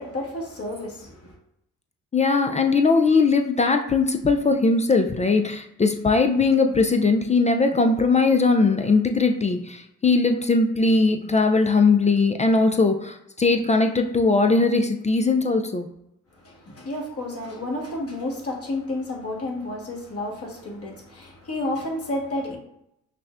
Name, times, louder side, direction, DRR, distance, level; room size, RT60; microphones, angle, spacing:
voice 1, 0.0-1.3 16.4-22.6, left 1 dB, 40° left, 0 dB, 1.4 m, -31 dB
voice 2, 2.1-15.9, left 3 dB, 20° left, 5 dB, 0.4 m, -20 dB
5.7 x 2.1 x 2.4 m, 0.81 s
hypercardioid pair, 50°, 35 cm